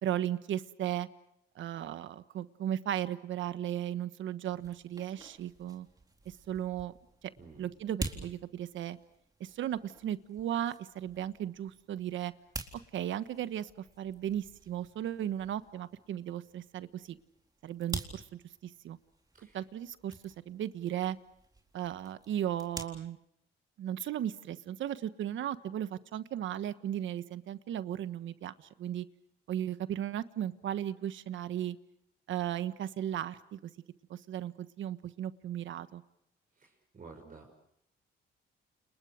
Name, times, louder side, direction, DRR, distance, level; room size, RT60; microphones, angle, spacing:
voice 1, 0.0-1.1 1.5-5.9 6.2-6.9 7.6-9.0 9.4-12.3 12.9-13.7 14.0-17.2 17.6-19.0 19.5-21.2 21.7-23.2 23.8-29.1 29.5-31.8 32.3-33.7 34.1-36.0, right 11 dB, 75° right, 12 dB, 1.3 m, -36 dB
sound 1, 4.5-22.8, right 2 dB, 20° right, 4.0 m, -48 dB
voice 2, 7.4-7.7 19.3-19.6 36.6-37.6, right 4 dB, 40° right, -1 dB, 6.8 m, -52 dB
29.5 x 29.5 x 5.1 m, 0.76 s
cardioid pair, 90°, 20 cm